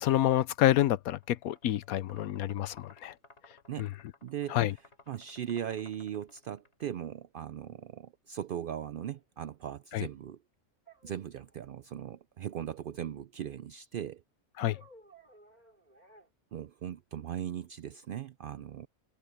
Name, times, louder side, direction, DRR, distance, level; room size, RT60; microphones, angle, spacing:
voice 1, 0.0-3.1 3.8-3.9 4.5-4.7 9.9-10.1 14.6-14.8, left 13 dB, 85° left, 1.1 m, -28 dB
sound 1, 1.2-6.8, left 2 dB, 50° left, 4.5 m, -58 dB
voice 2, 4.2-4.8 5.1-10.4 11.0-14.2 16.5-18.9, right 10 dB, 75° right, 0.5 m, -39 dB
sound 2, 9.1-9.2 10.9-11.8 14.6-16.3, right 2 dB, 30° right, 5.0 m, -56 dB
omnidirectional pair, 1.5 m